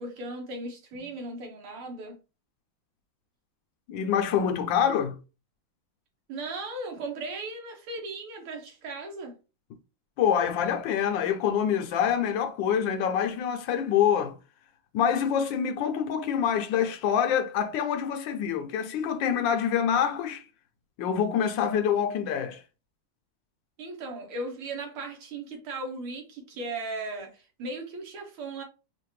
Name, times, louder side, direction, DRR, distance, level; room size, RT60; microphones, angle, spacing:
voice 1, 0.0-2.2 6.3-9.3 23.8-28.6, right 2 dB, 90° right, 2.1 m, -37 dB
voice 2, 3.9-5.2 10.2-14.4 14.9-20.4 21.0-22.6, left 8 dB, 70° left, 1.2 m, -26 dB
5.5 x 2.5 x 3.2 m
omnidirectional pair, 2.3 m